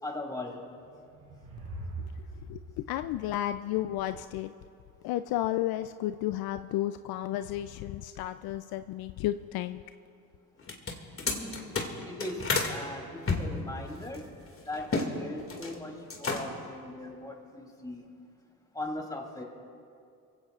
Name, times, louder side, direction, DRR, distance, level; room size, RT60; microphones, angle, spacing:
voice 1, 0.0-0.7 11.3-14.3 14.7-18.0 18.7-19.4, left 1 dB, 10° left, 1 dB, 3.0 m, -39 dB
sound 1, 0.7-4.2, right 3 dB, 70° right, 3.4 m, -43 dB
voice 2, 2.5-4.5 5.0-9.8, left 13 dB, 65° left, 11 dB, 0.5 m, -32 dB
sound 2, 10.6-12.7 13.2-15.1 15.4-15.8 16.1-16.7, left 3 dB, 35° left, 2.2 m, -31 dB
23.5 x 16.0 x 2.4 m, 2.5 s
supercardioid pair, 75°, 39 cm